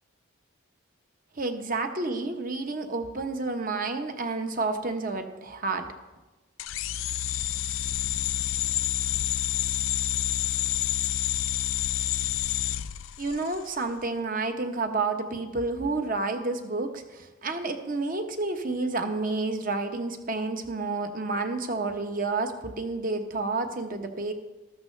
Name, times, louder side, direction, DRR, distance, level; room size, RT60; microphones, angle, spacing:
voice 1, 1.4-5.9 13.2-24.3, right 3 dB, 40° right, 6 dB, 1.0 m, -30 dB
sound 1, 6.6-13.7, left 12 dB, 70° left, 0.4 m, -28 dB
14.0 x 13.0 x 3.3 m, 1.2 s
head